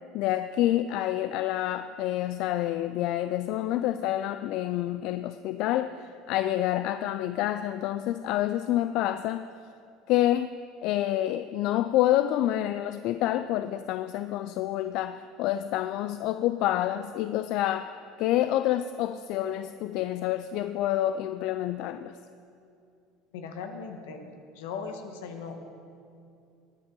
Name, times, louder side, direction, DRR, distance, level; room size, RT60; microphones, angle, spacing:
voice 1, 0.1-9.5 10.1-10.5 10.8-22.2, left 13 dB, 65° left, 11 dB, 0.3 m, -28 dB
voice 2, 23.3-24.2 24.5-25.6, left 5 dB, 85° left, 5 dB, 1.3 m, -38 dB
18.5 x 9.5 x 3.8 m, 2.5 s
supercardioid pair, 105°, 0 cm